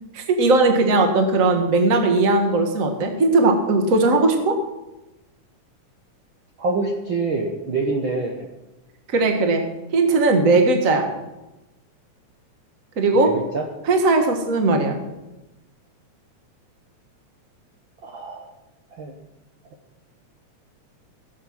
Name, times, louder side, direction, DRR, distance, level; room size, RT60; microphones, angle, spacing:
voice 1, 0.1-4.6 9.1-9.6 9.9-11.1 13.0-13.3 13.8-15.0, right 3 dB, 40° right, 4 dB, 1.3 m, -18 dB
voice 2, 6.6-8.5 13.1-13.6 18.0-18.5 18.9-19.1, right 3 dB, 55° right, 2 dB, 1.5 m, -26 dB
16.5 x 8.0 x 6.1 m, 1.0 s
omnidirectional pair, 3.5 m